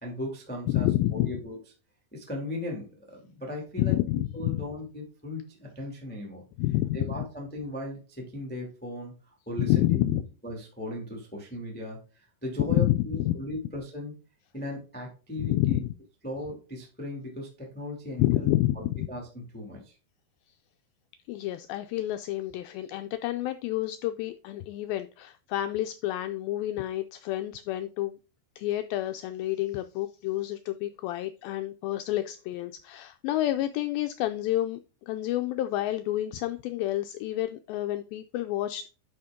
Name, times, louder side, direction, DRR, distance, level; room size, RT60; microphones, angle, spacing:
voice 1, 0.0-1.6 2.1-4.0 4.3-6.4 6.9-9.1 9.4-10.2 10.4-12.0 12.4-14.1 14.5-15.8 16.2-19.9, left 1 dB, 5° left, -1 dB, 0.9 m, -37 dB
voice 2, 0.7-1.3 3.8-4.7 6.6-7.2 9.6-10.2 12.7-13.3 15.4-15.9 18.2-19.1 21.3-28.2 28.6-34.8 35.1-38.9, left 15 dB, 90° left, 8 dB, 2.0 m, -29 dB
10.5 x 5.0 x 3.7 m, 0.33 s
omnidirectional pair, 4.7 m